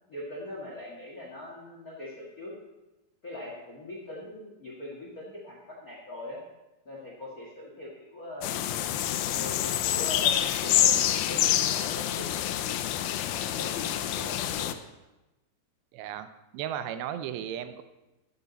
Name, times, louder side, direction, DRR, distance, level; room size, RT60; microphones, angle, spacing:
voice 1, 0.1-2.5 3.2-6.4 6.8-8.6 9.3-12.7 13.3-14.7, left 1 dB, 70° left, -2 dB, 0.8 m, -41 dB
sound 1, 8.4-14.7, left 11 dB, 90° left, 2.0 m, -27 dB
voice 2, 15.9-17.8, right 10 dB, 80° right, 11 dB, 2.8 m, -35 dB
13.0 x 10.5 x 4.0 m, 1.0 s
omnidirectional pair, 5.0 m